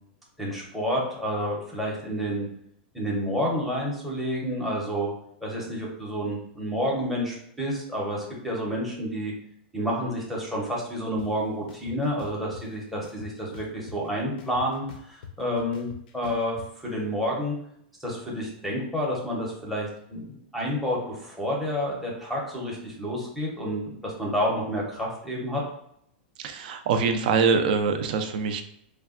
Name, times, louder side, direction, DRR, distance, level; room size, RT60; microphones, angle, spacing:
voice 1, 0.4-2.5 2.9-5.1 5.4-9.3 9.7-15.9 16.1-16.6 16.8-17.6 18.0-25.6, equal, ahead, -4 dB, 0.7 m, -29 dB
sound 1, 11.2-11.3 11.7-12.6 13.0-14.1 14.4-16.7, left 7 dB, 65° left, 0.5 m, -43 dB
voice 2, 26.4-28.6, right 5 dB, 60° right, 7 dB, 0.4 m, -24 dB
3.2 x 2.2 x 2.4 m, 0.72 s
supercardioid pair, 155°, 5 cm